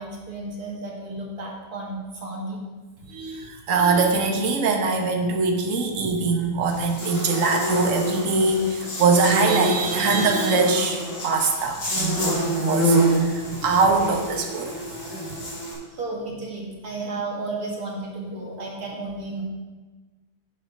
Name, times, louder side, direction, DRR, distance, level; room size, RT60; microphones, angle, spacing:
voice 1, 0.0-2.6 15.9-19.4, right 2 dB, 75° right, -2 dB, 2.4 m, -33 dB
voice 2, 3.1-14.8, right 4 dB, 60° right, 2 dB, 1.4 m, -23 dB
Buzz, 6.7-15.7, right 1 dB, 55° left, 3.3 m, -26 dB
9.6 x 5.9 x 5.2 m, 1.3 s
omnidirectional pair, 1.6 m